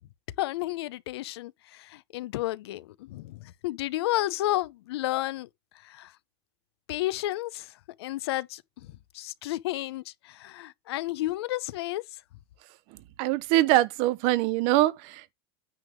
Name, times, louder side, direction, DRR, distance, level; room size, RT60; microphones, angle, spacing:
voice 1, 0.4-5.5 5.7-6.1 6.9-12.2, left 16 dB, 80° left, 0.6 m, -32 dB
voice 2, 13.2-15.3, right 16 dB, 45° right, 0.7 m, -23 dB
9.3 x 3.5 x 6.2 m
supercardioid pair, 165°, 13 cm